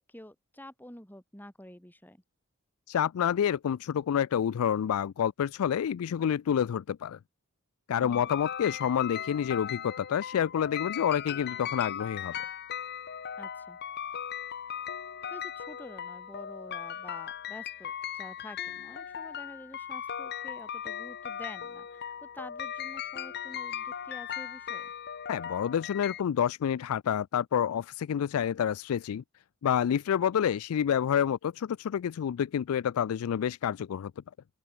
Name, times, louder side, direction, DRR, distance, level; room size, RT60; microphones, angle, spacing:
voice 1, 0.0-2.2 7.9-8.3 13.4-13.8 15.3-24.9, left 1 dB, 10° left, 6.8 m, -48 dB
voice 2, 2.9-7.2 7.9-12.3 25.3-29.2 29.6-34.1, left 8 dB, 85° left, 0.3 m, -28 dB
sound 1, 8.1-26.2, left 9 dB, 50° left, 0.7 m, -38 dB
open air
head